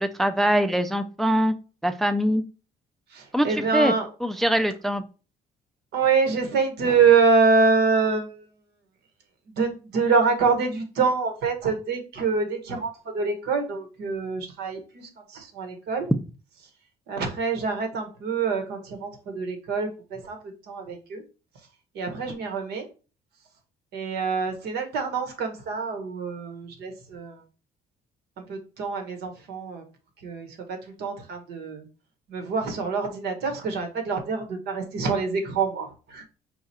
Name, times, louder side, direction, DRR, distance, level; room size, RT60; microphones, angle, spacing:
voice 1, 0.0-1.5 1.8-2.4 3.3-3.5 3.7-3.9 4.2-5.0, equal, ahead, 0.3 m, -22 dB
voice 2, 3.1-4.1 5.9-8.4 9.6-16.1 17.1-21.2 21.9-22.8 23.9-27.4 28.5-29.8 30.2-31.8 32.3-36.3, right 4 dB, 75° right, 1.3 m, -25 dB
4.8 x 2.4 x 4.2 m
cardioid pair, 110°, 17 cm